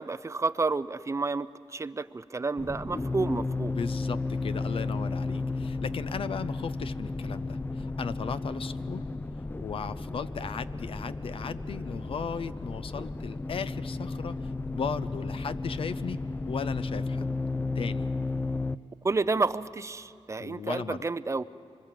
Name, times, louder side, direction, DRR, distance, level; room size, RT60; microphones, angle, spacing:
voice 1, 0.0-1.5 1.7-3.8 19.0-21.4, right 3 dB, 30° right, 15 dB, 0.5 m, -30 dB
sound 1, 2.6-18.8, left 3 dB, 20° left, 0.5 m, -33 dB
voice 2, 3.7-9.0 9.6-16.2 16.5-17.2 17.8-18.1 20.4-21.1, left 6 dB, 65° left, 13 dB, 0.6 m, -36 dB
25.5 x 25.0 x 7.4 m, 2.6 s
wide cardioid pair, 95°, 10 cm